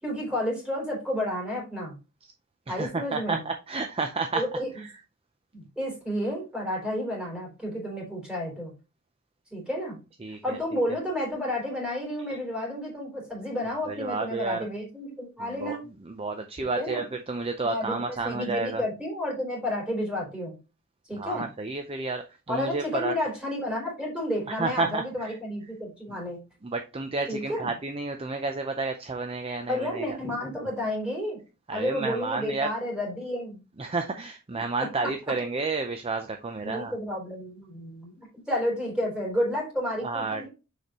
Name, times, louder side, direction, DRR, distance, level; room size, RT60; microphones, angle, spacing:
voice 1, 0.0-1.9 2.7-3.4 4.3-4.7 5.5-8.7 9.5-10.0 10.4-15.9 16.6-17.0 17.6-18.0 18.2-20.6 21.1-21.5 22.5-26.4 27.3-27.7 29.7-31.4 31.7-33.6 34.5-34.6 35.0-35.1 36.6-40.5, left 1 dB, 5° right, -3 dB, 3.4 m, -31 dB
voice 2, 2.7-4.4 4.8-4.9 10.2-10.6 13.9-14.7 15.4-15.8 16.1-18.8 21.2-23.2 24.5-25.3 26.6-30.1 31.7-32.7 33.8-37.0 40.0-40.4, right 3 dB, 25° right, 6 dB, 0.5 m, -31 dB
6.6 x 5.1 x 2.9 m, 0.29 s
head